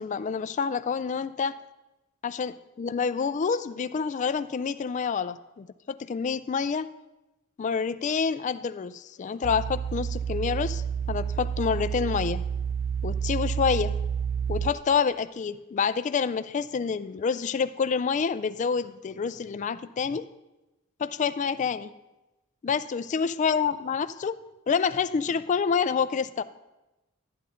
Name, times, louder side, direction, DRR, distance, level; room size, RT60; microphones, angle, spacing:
voice 1, 0.0-1.6 2.2-6.9 7.6-10.8 11.1-12.4 13.0-13.9 14.5-20.2 21.0-21.9 22.6-24.4 24.7-26.4, left 6 dB, 35° left, 12 dB, 0.3 m, -28 dB
sound 1, 9.4-14.7, right 7 dB, 40° right, 0.4 m, -29 dB
11.5 x 10.5 x 3.8 m, 1.0 s
head